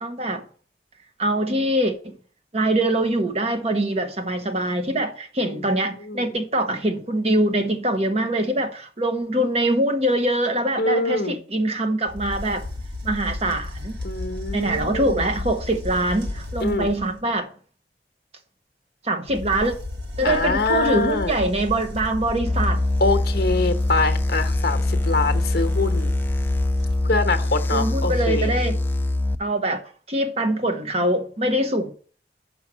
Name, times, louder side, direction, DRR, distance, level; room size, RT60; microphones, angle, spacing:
voice 1, 0.0-0.4 1.2-2.1 2.5-12.6 13.0-14.0 14.5-17.5 19.0-19.7 20.2-22.8 27.7-28.8 29.4-29.8 30.1-31.9, right 1 dB, 35° right, 0.9 m, -23 dB
voice 2, 5.4-6.3 10.8-11.4 14.0-15.3 16.6-16.9 20.2-21.4 23.0-26.1 27.1-28.5, left 3 dB, 60° left, 1.0 m, -24 dB
sound 1, 12.1-17.2 19.3-27.3, left 2 dB, 75° right, 1.5 m, -33 dB
sound 2, 22.5-29.4, left 2 dB, 10° left, 0.3 m, -23 dB
6.0 x 5.4 x 6.1 m
head